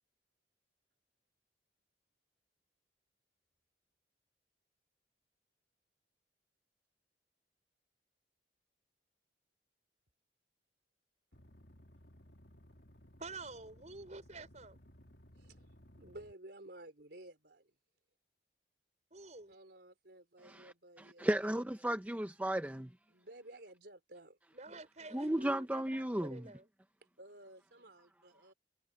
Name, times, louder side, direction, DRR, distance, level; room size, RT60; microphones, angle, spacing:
sound 1, 11.3-16.3, equal, 70° left, 2.9 m, -60 dB
voice 1, 13.2-14.8 19.1-19.6 24.5-26.7, right 3 dB, 40° right, 5.9 m, -49 dB
voice 2, 15.4-15.7 16.0-17.7 19.5-21.3 23.1-24.4 27.2-28.5, right 1 dB, 70° right, 4.4 m, -54 dB
voice 3, 21.0-22.9 25.1-26.4, right 1 dB, 10° right, 0.7 m, -34 dB
head